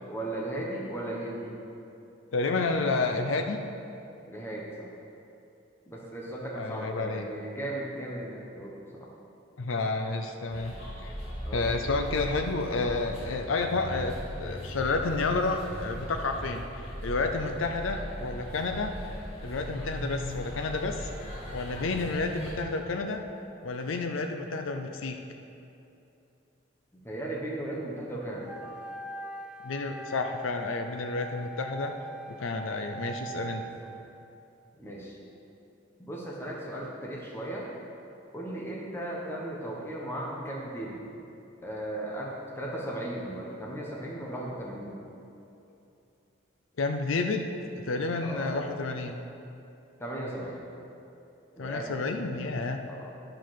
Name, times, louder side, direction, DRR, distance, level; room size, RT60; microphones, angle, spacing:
voice 1, 0.1-1.6 4.3-4.9 5.9-9.1 11.4-11.7 27.0-28.5 33.4-33.9 34.8-35.2 36.0-37.7 38.3-41.0 41.6-44.9 48.2-48.6 50.0-50.6 51.5-52.0 52.3-52.5 52.9-53.1, right 1 dB, 10° left, -4 dB, 1.1 m, -36 dB
voice 2, 2.3-3.6 6.6-7.3 9.6-11.2 11.5-14.1 14.4-19.0 19.4-21.1 21.5-23.2 23.6-25.2 29.6-31.9 32.3-33.6 46.8-47.5 47.8-49.2 51.6-52.8, left 3 dB, 85° left, 5 dB, 0.6 m, -30 dB
sound 1, 10.5-22.5, equal, 30° left, 2.4 m, -39 dB
Wind instrument woodwind instrument, 28.4-34.4, right 2 dB, 5° right, 0.3 m, -42 dB
11.0 x 5.3 x 5.8 m, 2.7 s
head